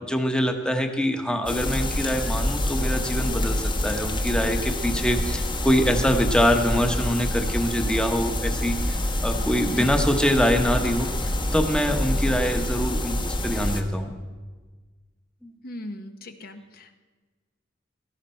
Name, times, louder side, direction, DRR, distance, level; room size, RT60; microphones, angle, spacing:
voice 1, 0.0-14.1 15.4-15.5, equal, 5° left, 5 dB, 0.9 m, -24 dB
sound 1, 1.5-13.8, left 1 dB, 25° left, 1.0 m, -27 dB
voice 2, 15.6-17.0, left 1 dB, 55° left, 7 dB, 0.8 m, -38 dB
17.0 x 14.0 x 4.4 m, 1.4 s
head